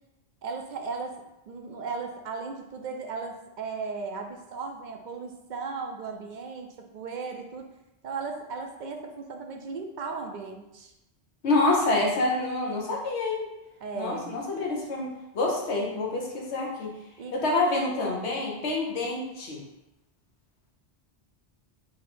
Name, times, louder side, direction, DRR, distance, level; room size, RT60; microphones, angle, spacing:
voice 1, 0.4-1.1 1.5-7.7 8.0-10.9 13.8-14.4 17.2-17.3, right 4 dB, 55° right, 4 dB, 0.5 m, -36 dB
voice 2, 11.4-13.5 13.9-16.9 17.3-19.6, left 2 dB, 85° left, -2 dB, 1.2 m, -27 dB
3.9 x 2.7 x 4.2 m, 0.92 s
omnidirectional pair, 1.1 m